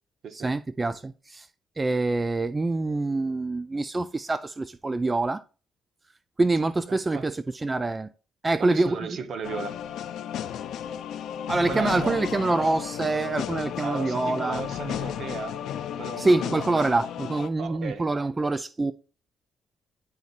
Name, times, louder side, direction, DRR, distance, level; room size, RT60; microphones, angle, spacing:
voice 1, 0.3-1.5 1.8-5.4 6.4-8.1 8.4-9.0 11.5-14.6 16.2-18.9, right 2 dB, 25° right, 0.4 m, -25 dB
voice 2, 6.9-7.3 8.6-9.8 11.7-12.3 13.8-15.6 16.0-16.9 17.6-18.1, right 5 dB, 65° right, 1.0 m, -35 dB
sound 1, 9.4-17.5, left 9 dB, 80° left, 0.7 m, -34 dB
11.0 x 4.1 x 2.5 m
cardioid pair, 90°, 0 cm